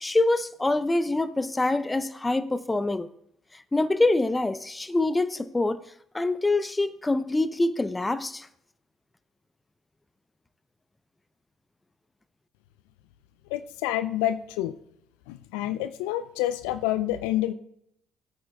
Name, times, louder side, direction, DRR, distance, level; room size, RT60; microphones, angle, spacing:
voice 1, 0.0-3.1 3.7-5.8 6.1-8.5, left 2 dB, 15° left, 0.7 m, -25 dB
voice 2, 13.5-14.7 15.3-17.5, left 13 dB, 75° left, 0.4 m, -28 dB
18.0 x 8.7 x 2.3 m
hypercardioid pair, 55°, 0 cm